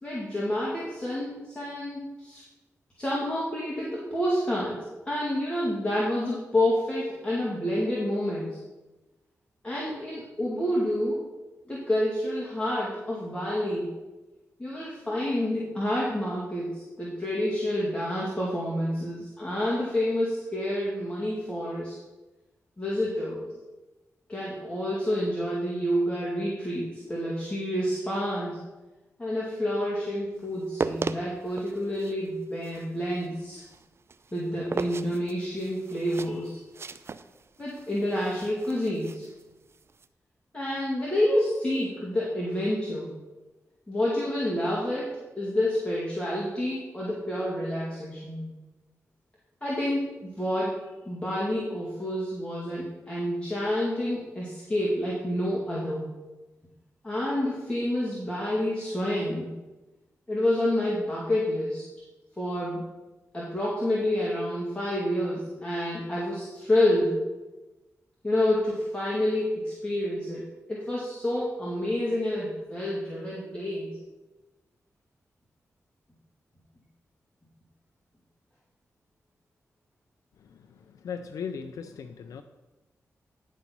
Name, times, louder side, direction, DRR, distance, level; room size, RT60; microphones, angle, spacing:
voice 1, 0.0-2.4 3.0-8.6 9.6-11.2 11.7-14.0 14.6-22.0 22.8-23.5 24.3-28.6 29.2-33.6 34.3-36.6 37.6-39.3 40.5-43.2 43.9-48.5 49.6-56.2 57.0-59.5 60.3-61.8 62.4-62.9 63.3-67.3 68.2-74.0, left 1 dB, 20° left, -6 dB, 2.3 m, -28 dB
sound 1, 30.5-40.1, right 4 dB, 50° right, 0.5 m, -38 dB
voice 2, 81.0-82.4, left 6 dB, 90° left, 8 dB, 0.4 m, -36 dB
10.5 x 4.1 x 6.0 m, 1.1 s
cardioid pair, 55°, 6 cm